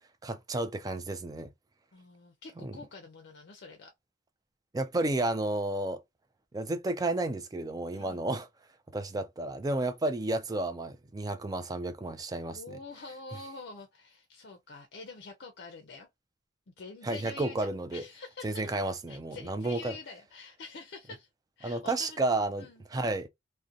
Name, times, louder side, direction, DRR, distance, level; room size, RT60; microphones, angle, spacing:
voice 1, 0.2-1.5 2.6-2.7 4.7-6.0 6.5-8.5 8.9-12.8 17.0-18.1 18.4-20.0 21.6-23.3, right 2 dB, 20° right, 0.3 m, -32 dB
voice 2, 1.9-3.9 7.9-8.2 12.5-16.1 16.8-18.8 19.1-21.3 21.6-22.2 22.6-22.8, left 3 dB, 60° left, 0.5 m, -46 dB
2.5 x 2.1 x 2.5 m
head